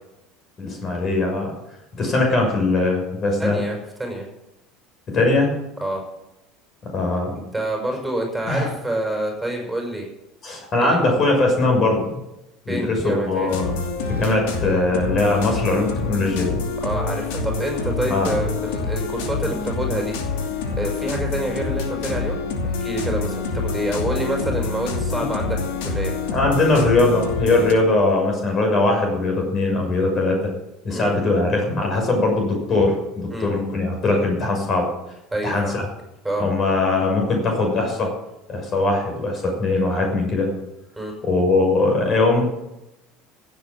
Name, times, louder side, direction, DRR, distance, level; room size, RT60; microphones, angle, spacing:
voice 1, 0.6-1.5 2.0-3.6 5.1-5.5 6.9-7.4 8.5-8.7 10.4-12.0 12.7-13.7 14.1-16.6 18.1-18.3 26.3-30.5 30.8-34.9 35.4-35.8 36.4-38.1 38.5-40.5 41.2-42.5, left 2 dB, 40° left, 2 dB, 6.3 m, -20 dB
voice 2, 3.4-4.2 5.8-6.0 7.5-10.1 10.8-11.0 12.7-13.5 16.8-22.4 22.6-26.1 30.9-31.1 33.3-33.5 35.3-35.8 36.2-36.5 41.0-41.1, right 1 dB, 5° right, 2 dB, 6.0 m, -27 dB
sound 1, 13.5-27.7, left 4 dB, 75° left, 2.6 m, -26 dB
16.0 x 8.4 x 7.5 m, 0.92 s
hypercardioid pair, 85°, 0 cm